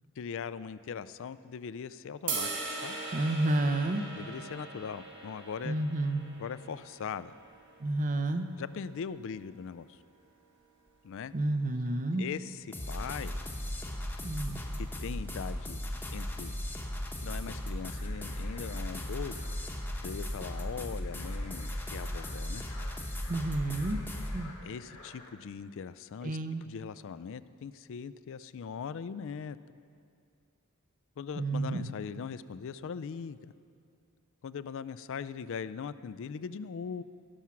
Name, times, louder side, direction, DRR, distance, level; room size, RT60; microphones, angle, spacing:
voice 1, 0.2-2.5 2.8-3.0 4.1-5.8 6.4-7.4 8.6-10.0 11.0-11.3 12.1-13.4 14.8-16.6 17.2-19.4 20.0-22.7 24.6-29.6 31.2-33.5 34.4-37.0, left 6 dB, 60° left, 16 dB, 0.4 m, -40 dB
sound 1, 2.3-8.5, right 3 dB, 60° right, 2.1 m, -40 dB
voice 2, 3.1-4.0 5.6-6.2 7.8-8.4 11.3-12.3 14.2-14.6 23.3-24.0 24.3-24.5 26.2-26.6 31.4-31.9, right 2 dB, 40° right, 9 dB, 0.6 m, -30 dB
sound 2, 12.7-24.4, left 1 dB, 10° left, 0.9 m, -37 dB
sound 3, 17.8-25.4, left 2 dB, 85° left, 1.8 m, -53 dB
17.5 x 6.1 x 5.8 m, 2.4 s
head